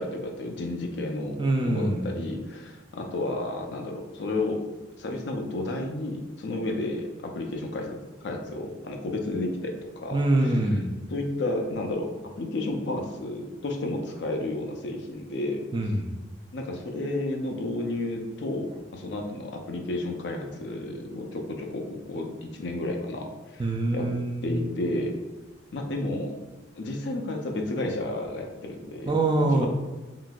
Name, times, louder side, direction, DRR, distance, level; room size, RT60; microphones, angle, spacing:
voice 1, 0.0-4.6 5.0-10.5 11.1-12.1 12.4-15.6 16.5-23.6 23.9-24.1 24.4-25.1 25.7-26.4 26.8-29.2 29.5-29.7, left 2 dB, 65° left, 2 dB, 0.4 m, -32 dB
voice 2, 1.4-2.1 10.1-10.9 15.7-16.1 23.6-24.7 29.1-29.7, right 2 dB, 25° right, 2 dB, 0.3 m, -24 dB
3.8 x 2.6 x 2.3 m, 1.2 s
head